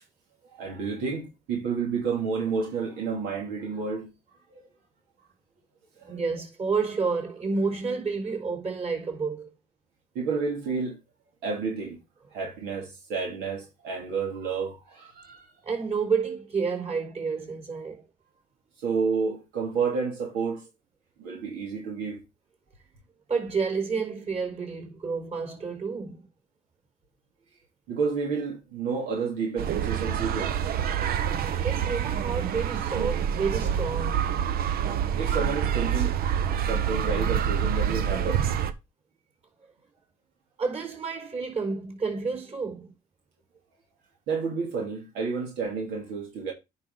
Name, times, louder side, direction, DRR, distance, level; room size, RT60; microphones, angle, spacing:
voice 1, 0.5-4.1 4.5-4.6 6.0-6.2 10.1-11.0 11.4-12.0 12.3-15.5 18.8-20.7 21.2-22.2 27.9-30.6 35.2-36.1 36.7-38.5 44.3-46.5, right 5 dB, 80° right, 2.8 m, -30 dB
voice 2, 6.1-9.5 15.6-18.0 23.3-26.2 31.6-34.3 40.6-42.9, right 4 dB, 40° right, 4.5 m, -30 dB
sound 1, 29.6-38.7, right 9 dB, 65° right, 1.0 m, -27 dB
9.8 x 5.6 x 3.9 m
supercardioid pair, 70°, 17 cm